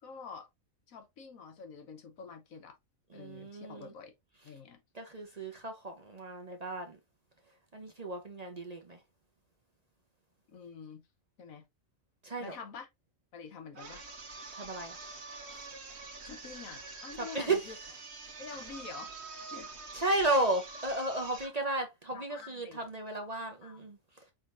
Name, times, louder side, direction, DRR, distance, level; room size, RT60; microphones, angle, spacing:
voice 1, 0.0-0.5 0.9-2.8 3.1-4.1 4.4-4.8 10.5-11.1 11.4-11.6 12.4-12.9 13.3-14.0 16.2-17.8 18.4-19.1 19.5-19.7 20.1-20.2 22.1-22.8 23.6-23.9, left 5 dB, 85° left, 1.5 m, -47 dB
voice 2, 3.1-3.9 4.9-7.0 7.7-9.0 12.2-12.6 14.5-15.0 15.5-15.6 17.2-17.6 19.9-24.0, right 2 dB, 35° right, 0.8 m, -34 dB
sound 1, 13.7-21.6, right 4 dB, 55° right, 1.5 m, -46 dB
5.0 x 3.9 x 2.6 m
omnidirectional pair, 1.4 m